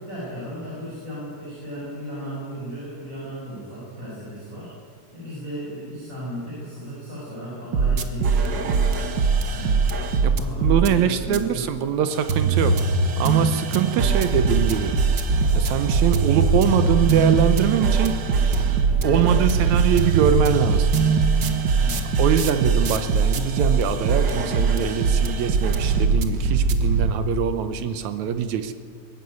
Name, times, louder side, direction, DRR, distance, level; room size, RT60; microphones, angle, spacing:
voice 1, 0.0-4.7 5.1-8.7 9.5-9.8 10.1-11.7 12.3-13.1 13.9-14.2 21.7-22.1, equal, 20° right, -7 dB, 6.0 m, -35 dB
sound 1, 7.7-10.9 11.3-11.4 12.1-27.1, right 4 dB, 90° right, 1.0 m, -21 dB
voice 2, 10.2-12.8 13.2-15.1 15.5-18.2 19.0-20.9 22.2-28.7, right 9 dB, 70° right, 11 dB, 1.8 m, -23 dB
21.5 x 12.5 x 9.5 m, 2.2 s
omnidirectional pair, 4.0 m